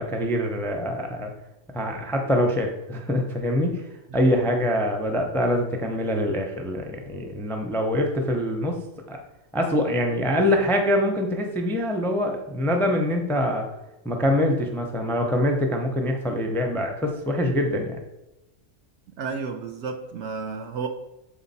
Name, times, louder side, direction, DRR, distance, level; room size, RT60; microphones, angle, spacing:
voice 1, 0.0-1.3 1.7-3.8 4.1-9.2 9.5-13.7 14.0-18.0, left 1 dB, 5° left, 0.4 m, -24 dB
voice 2, 19.2-20.9, right 5 dB, 65° right, 0.8 m, -32 dB
7.1 x 4.2 x 4.1 m
omnidirectional pair, 1.5 m